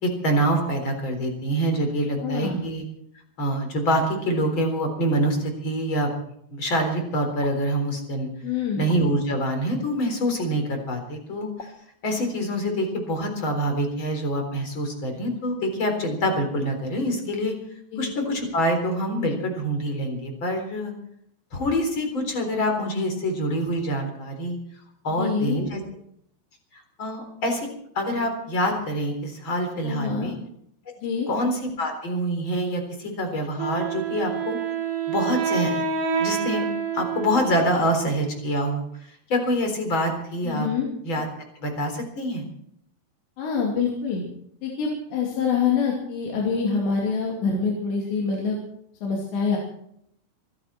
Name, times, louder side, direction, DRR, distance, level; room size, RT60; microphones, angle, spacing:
voice 1, 0.0-2.8 3.4-6.1 6.5-8.3 8.8-11.7 12.0-17.5 18.0-20.9 21.5-24.6 25.0-25.8 27.0-27.7 27.9-30.3 31.3-34.6 35.1-35.8 36.2-36.6 36.9-38.8 39.3-40.7 41.0-41.3 41.6-42.4, equal, 30° left, 4 dB, 4.1 m, -25 dB
voice 2, 2.2-2.6 8.4-8.9 17.9-18.1 25.2-25.6 29.8-30.3 31.0-31.3 40.4-40.9 43.4-44.2 44.6-48.6 49.0-49.6, left 5 dB, 85° left, -1 dB, 5.0 m, -25 dB
sound 1, 7.4-7.6 8.9-9.0 10.4-10.5 11.6-11.7, left 4 dB, 55° left, 1.2 m, -41 dB
Wind instrument woodwind instrument, 33.6-38.4, right 6 dB, 80° right, 5.1 m, -28 dB
25.5 x 12.0 x 4.4 m, 0.71 s
omnidirectional pair, 4.9 m